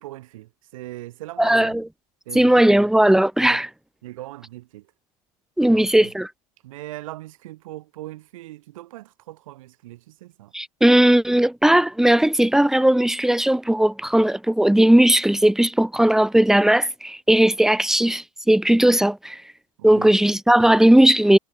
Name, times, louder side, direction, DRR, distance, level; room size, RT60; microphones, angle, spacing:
voice 1, 0.0-1.8 2.3-2.6 3.5-3.6 4.0-4.9 5.7-6.1 6.6-10.5 19.8-20.2, right 16 dB, 70° right, 5.6 m, -39 dB
voice 2, 1.4-1.8 2.3-3.7 5.6-6.3 10.5-19.4 19.8-21.4, right 1 dB, 5° right, 1.1 m, -17 dB
hypercardioid pair, 80°, 18 cm